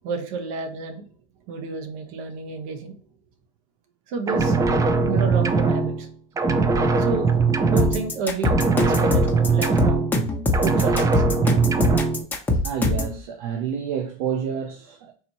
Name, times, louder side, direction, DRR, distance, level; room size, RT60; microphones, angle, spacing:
voice 1, 0.0-1.1 1.5-2.9 4.1-4.6 5.1-6.1 7.0-7.4 7.6-10.1 10.6-11.2, right 4 dB, 70° right, 1.0 m, -30 dB
sound 1, 4.3-6.1 6.4-8.2 8.4-10.3 10.5-12.2, right 4 dB, 20° right, 0.4 m, -21 dB
sound 2, 7.8-13.1, left 2 dB, 10° left, 0.9 m, -23 dB
voice 2, 12.6-15.1, right 8 dB, 85° right, 0.6 m, -29 dB
4.1 x 2.8 x 2.9 m
supercardioid pair, 120°, 18 cm